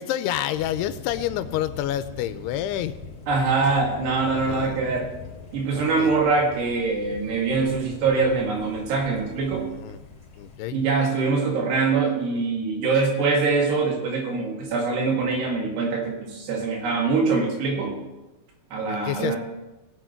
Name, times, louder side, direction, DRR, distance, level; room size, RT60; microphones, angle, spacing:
voice 1, 0.0-3.0 4.3-4.8 5.7-6.1 9.8-10.0 10.4-10.8 18.9-19.4, left 12 dB, 90° left, 13 dB, 2.7 m, -28 dB
Thunder, 0.5-10.6, left 4 dB, 70° left, 0.9 m, -42 dB
voice 2, 3.3-5.1 5.5-9.7 10.7-18.0 18.7-19.4, right 4 dB, 85° right, 0 dB, 4.4 m, -23 dB
19.5 x 7.6 x 4.5 m, 1.1 s
omnidirectional pair, 4.6 m